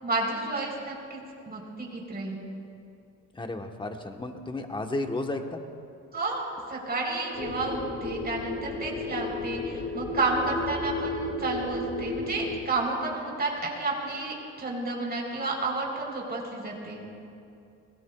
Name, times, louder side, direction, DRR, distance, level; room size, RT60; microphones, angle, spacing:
voice 1, 0.0-1.2 1.5-2.4 6.1-17.0, right 3 dB, 30° right, -2 dB, 3.9 m, -31 dB
voice 2, 3.3-5.6, left 2 dB, 15° left, 4 dB, 1.2 m, -33 dB
sound 1, 7.3-12.6, left 2 dB, 65° left, 2.4 m, -33 dB
21.5 x 17.5 x 2.3 m, 2.6 s
cardioid pair, 90°, 30 cm